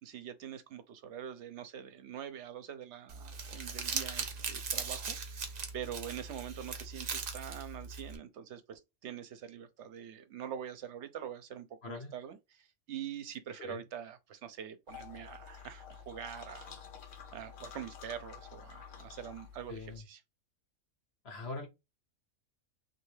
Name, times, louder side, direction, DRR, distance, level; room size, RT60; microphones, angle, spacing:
voice 1, 0.0-16.8 17.3-20.2, right 9 dB, 75° right, 0.9 m, -44 dB
Crumpling crinkling, 3.1-8.2, right 5 dB, 50° right, 0.5 m, -39 dB
voice 2, 11.8-12.1 13.6-13.8 19.7-20.0 21.2-21.7, left 3 dB, 60° left, 1.1 m, -42 dB
sound 1, 14.9-20.0, left 7 dB, 90° left, 1.1 m, -50 dB
3.1 x 2.6 x 3.1 m
omnidirectional pair, 1.2 m